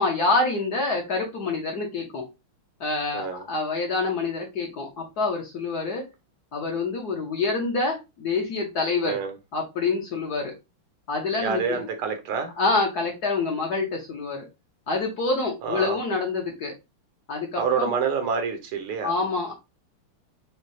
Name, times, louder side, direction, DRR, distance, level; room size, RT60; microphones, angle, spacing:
voice 1, 0.0-2.3 2.8-6.0 6.5-9.2 9.5-10.5 11.1-11.8 12.6-14.4 14.9-16.7 17.3-17.9 19.0-19.5, left 3 dB, 55° left, 1.2 m, -26 dB
voice 2, 3.1-3.4 9.1-9.3 11.4-12.5 15.6-16.0 17.6-19.1, right 6 dB, 80° right, 1.8 m, -27 dB
6.3 x 2.3 x 2.7 m
omnidirectional pair, 2.4 m